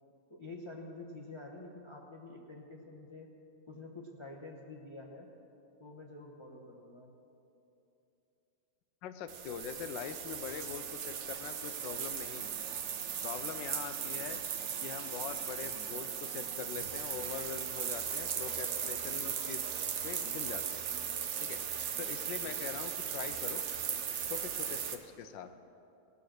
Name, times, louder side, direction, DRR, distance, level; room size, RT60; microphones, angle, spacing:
voice 1, 0.3-3.3 3.7-5.3 5.8-7.1, left 2 dB, 25° left, -1 dB, 0.7 m, -48 dB
voice 2, 9.0-12.5 13.2-14.4 14.8-19.6 20.0-20.8 21.4-21.6 22.0-23.6 24.3-25.5, left 8 dB, 80° left, 10 dB, 1.3 m, -43 dB
sound 1, 9.3-25.0, right 8 dB, 60° right, 0.7 m, -37 dB
17.0 x 6.9 x 6.5 m, 2.8 s
omnidirectional pair, 2.1 m